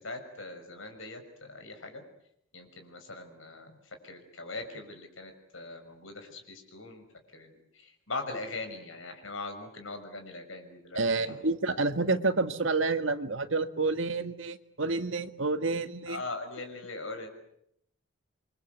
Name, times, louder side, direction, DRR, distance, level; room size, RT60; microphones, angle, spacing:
voice 1, 0.0-2.0 2.5-3.8 4.0-7.1 7.3-11.4 16.1-17.3, left 3 dB, 70° left, 6 dB, 6.1 m, -41 dB
voice 2, 10.9-16.2, right 3 dB, 65° right, 9 dB, 1.7 m, -29 dB
27.5 x 24.0 x 8.1 m, 0.73 s
head